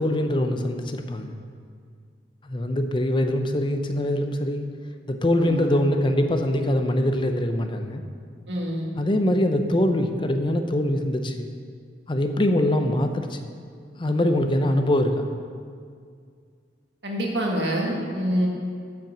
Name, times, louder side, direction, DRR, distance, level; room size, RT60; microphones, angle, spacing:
voice 1, 0.0-1.3 2.4-4.7 5.1-8.0 9.0-11.5 12.1-13.5 14.0-15.3, left 1 dB, 25° left, 6 dB, 0.6 m, -23 dB
voice 2, 5.4-5.8 8.5-8.9 17.0-18.5, equal, 70° right, -1 dB, 1.8 m, -26 dB
7.5 x 5.9 x 7.3 m, 2.1 s
head